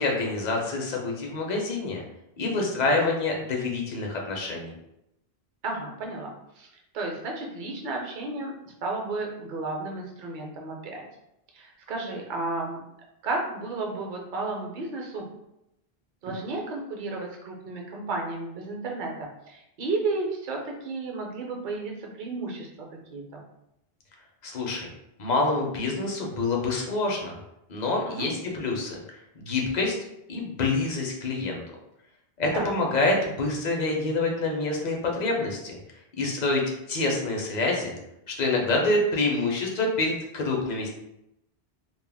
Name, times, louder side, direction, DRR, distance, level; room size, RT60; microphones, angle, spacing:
voice 1, 0.0-2.0 2.4-4.8 24.4-24.9 25.2-27.4 27.7-29.0 29.4-30.0 30.3-31.6 32.4-35.8 36.2-36.6 36.9-38.0 38.3-40.9, left 2 dB, 50° left, 0 dB, 0.6 m, -26 dB
voice 2, 5.6-6.3 6.6-6.7 6.9-8.5 8.8-11.0 11.5-12.8 13.2-15.2 16.2-22.7 23.1-23.4 28.1-28.3 32.5-32.7, right 3 dB, 55° right, 0 dB, 0.6 m, -32 dB
2.2 x 2.0 x 3.3 m, 0.84 s
omnidirectional pair, 1.1 m